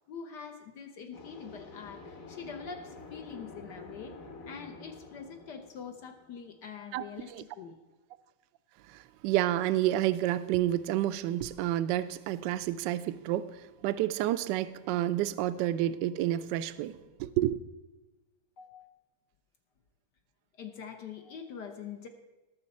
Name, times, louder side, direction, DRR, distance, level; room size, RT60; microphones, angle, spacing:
voice 1, 0.1-4.2 4.5-7.8 18.6-18.9 20.6-22.1, left 6 dB, 65° left, 1.3 m, -44 dB
sound 1, 1.1-6.8, left 3 dB, 45° left, 1.5 m, -48 dB
voice 2, 8.9-13.5 13.8-17.6, right 13 dB, 75° right, 1.1 m, -29 dB
18.0 x 7.0 x 4.2 m
omnidirectional pair, 2.2 m